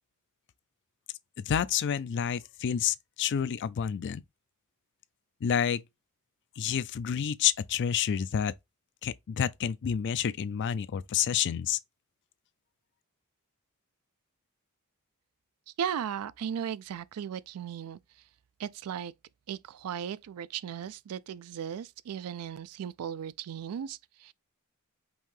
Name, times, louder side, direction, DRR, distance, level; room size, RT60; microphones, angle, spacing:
voice 1, 1.4-4.2 5.4-5.8 6.6-8.5 9.0-11.8, left 8 dB, 50° left, 0.3 m, -29 dB
voice 2, 15.8-18.0 18.6-19.1 19.5-24.3, right 8 dB, 80° right, 0.3 m, -36 dB
5.4 x 2.7 x 3.1 m
head